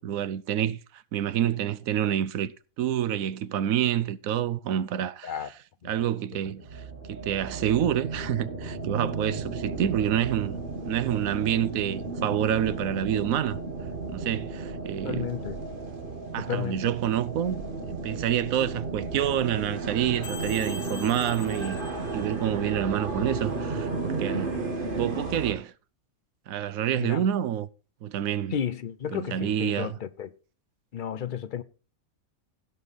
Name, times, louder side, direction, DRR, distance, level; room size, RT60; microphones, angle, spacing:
voice 1, 0.0-2.5 2.8-5.5 5.8-13.6 14.1-15.4 16.3-21.8 22.1-24.5 24.9-25.7 26.5-27.7 28.0-28.5 29.1-30.0, right 10 dB, 75° right, 1.1 m, -28 dB
sound 1, 6.6-25.5, right 3 dB, 35° right, 1.6 m, -34 dB
voice 2, 15.0-15.6 16.5-16.9 27.0-27.2 28.5-30.3 30.9-31.6, left 9 dB, 50° left, 0.6 m, -33 dB
sound 2, 20.2-22.8, left 4 dB, 85° left, 1.7 m, -43 dB
16.0 x 5.4 x 4.0 m
omnidirectional pair, 1.5 m